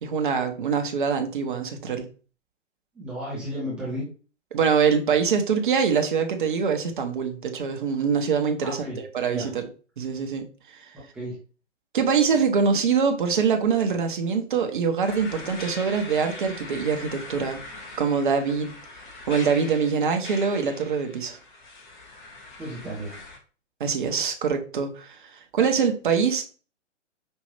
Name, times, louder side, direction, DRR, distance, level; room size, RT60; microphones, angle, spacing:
voice 1, 0.0-2.1 4.5-8.9 9.1-9.7 10.0-10.4 10.7-10.9 11.9-17.6 18.0-18.7 19.3-21.4 23.8-26.4, right 6 dB, 40° right, 5 dB, 0.9 m, -24 dB
voice 2, 2.9-4.1 8.6-9.0 9.2-9.5 11.1-11.4 22.6-23.1, equal, 5° right, -8 dB, 0.7 m, -33 dB
sound 1, 15.1-23.4, left 2 dB, 40° left, 1.3 m, -41 dB
5.3 x 2.7 x 3.2 m, 0.37 s
figure-of-eight pair, 125°, 37 cm